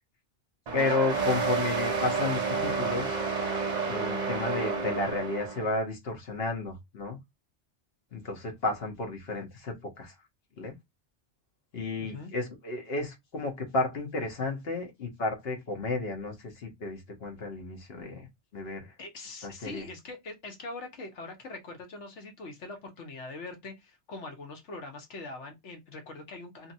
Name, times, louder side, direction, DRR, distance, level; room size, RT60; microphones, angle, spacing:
voice 1, 0.7-3.2 3.9-7.2 8.1-10.2 10.6-10.7 11.7-18.3 18.5-18.9 19.4-19.8, left 3 dB, 60° left, 1.2 m, -32 dB
sound 1, 0.7-5.8, right 4 dB, 45° right, 0.7 m, -30 dB
voice 2, 12.0-12.3 19.0-26.7, left 3 dB, 80° left, 1.3 m, -42 dB
2.8 x 2.7 x 2.6 m
omnidirectional pair, 1.2 m